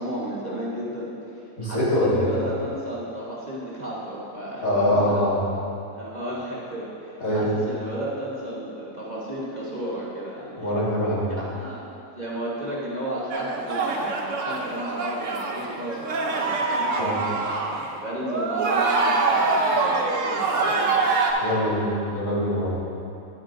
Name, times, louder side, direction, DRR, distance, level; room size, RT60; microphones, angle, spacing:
voice 1, 0.0-5.3 5.9-10.7 11.3-11.8 12.1-17.4 17.9-21.1, right 1 dB, 30° right, -7 dB, 1.2 m, -33 dB
voice 2, 1.6-2.3 4.6-5.4 7.2-7.5 10.6-11.3 17.0-17.2 21.4-22.8, left 1 dB, 70° left, -8 dB, 2.5 m, -23 dB
sound 1, 13.3-17.9 18.2-21.3, right 3 dB, 65° right, 1.1 m, -24 dB
10.0 x 8.9 x 2.6 m, 2.7 s
omnidirectional pair, 1.5 m